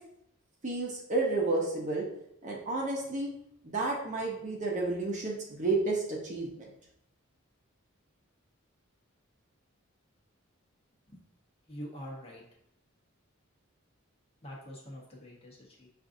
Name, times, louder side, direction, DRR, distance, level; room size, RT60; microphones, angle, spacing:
voice 1, 0.6-2.1 2.4-3.3 3.6-6.5, right 3 dB, 35° right, -2 dB, 0.7 m, -31 dB
voice 2, 11.7-12.4 14.4-15.9, equal, 30° left, -3 dB, 0.9 m, -44 dB
6.0 x 2.5 x 2.6 m, 0.75 s
head